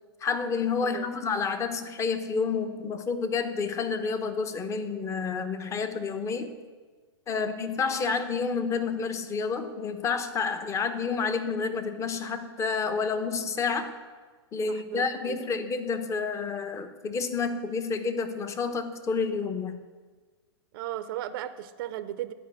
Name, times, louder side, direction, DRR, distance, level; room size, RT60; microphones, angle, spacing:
voice 1, 0.2-6.6 7.3-13.9 14.5-19.8, left 5 dB, 20° left, 9 dB, 0.9 m, -29 dB
voice 2, 14.7-15.4 20.7-22.3, right 12 dB, 55° right, 12 dB, 0.6 m, -36 dB
12.0 x 5.3 x 7.7 m, 1.4 s
hypercardioid pair, 120°, 14 cm